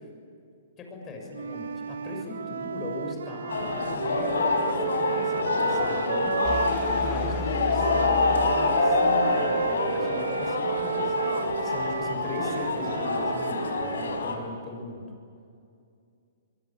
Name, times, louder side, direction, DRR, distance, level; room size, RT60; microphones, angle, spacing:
voice 1, 0.8-15.1, left 2 dB, 20° left, 2 dB, 6.9 m, -39 dB
Wind instrument woodwind instrument, 1.3-7.1 7.8-14.3, right 6 dB, 80° right, 1.5 m, -32 dB
sound 1, 3.5-14.3, left 3 dB, 85° left, 4.8 m, -26 dB
sound 2, 6.4-9.4, left 1 dB, 5° right, 1.8 m, -36 dB
23.5 x 23.5 x 8.8 m, 2.4 s
hypercardioid pair, 145°, 0 cm